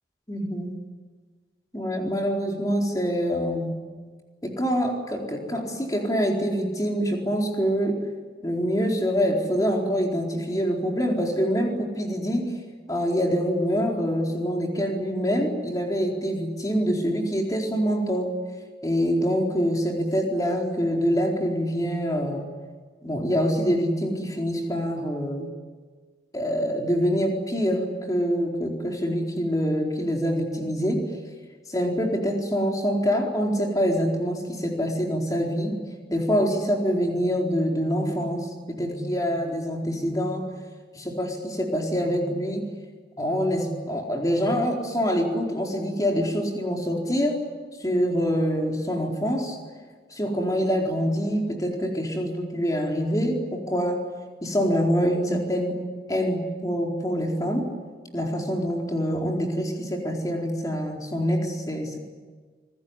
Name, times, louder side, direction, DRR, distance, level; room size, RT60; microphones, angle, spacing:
voice 1, 0.3-0.8 1.7-3.8 4.4-8.0 8.4-12.6 12.9-18.3 18.8-22.5 23.0-25.5 26.3-31.1 31.7-35.8 36.1-40.5 40.9-42.7 43.2-47.4 47.8-49.6 50.2-54.0 54.4-55.8 56.1-57.7 58.1-62.0, equal, 20° left, 0 dB, 4.3 m, -25 dB
27.0 x 20.5 x 9.9 m, 1.5 s
head